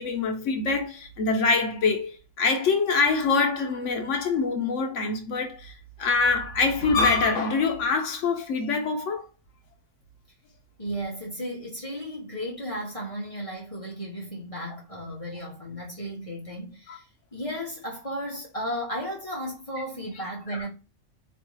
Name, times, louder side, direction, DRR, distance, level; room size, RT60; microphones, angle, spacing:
voice 1, 0.0-5.7 6.0-9.2 16.9-17.0 20.5-20.6, left 4 dB, 80° left, 1.1 m, -25 dB
voice 2, 10.8-20.7, equal, 25° left, 1.5 m, -34 dB
4.5 x 3.2 x 3.1 m
omnidirectional pair, 1.3 m